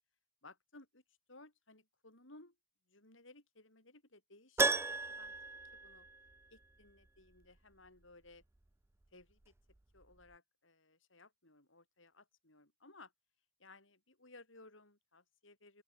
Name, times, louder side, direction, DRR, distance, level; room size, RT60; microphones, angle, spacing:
voice 1, 0.4-1.0 1.3-2.6 2.9-5.3 5.7-6.1 6.5-8.4 9.1-9.5 9.9-13.1 13.6-15.8, left 2 dB, 70° left, 6.9 m, -60 dB
Keyboard (musical), 4.6-6.6 6.9-7.0 9.7-9.8 10.0-10.1, right 3 dB, 10° right, 0.3 m, -35 dB
open air
head